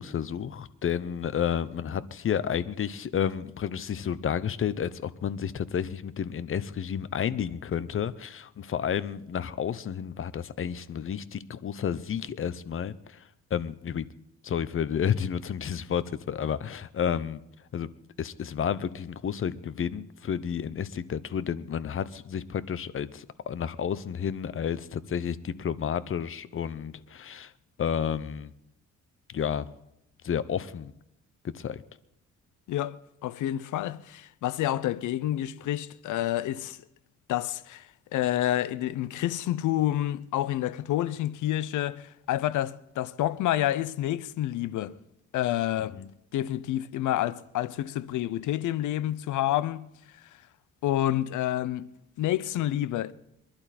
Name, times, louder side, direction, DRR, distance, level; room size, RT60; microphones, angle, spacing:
voice 1, 0.0-13.2 13.5-14.1 14.4-17.4 17.7-17.9 18.2-27.5 27.8-28.5 29.3-29.7 30.2-30.9 31.4-31.8 45.9-46.1, left 8 dB, 45° left, 0.8 m, -31 dB
voice 2, 33.2-36.8 37.3-45.0 45.3-46.0 46.3-49.9 50.8-51.9 52.2-53.1, left 13 dB, 80° left, 0.7 m, -28 dB
22.5 x 11.5 x 4.3 m
cardioid pair, 90°, 30 cm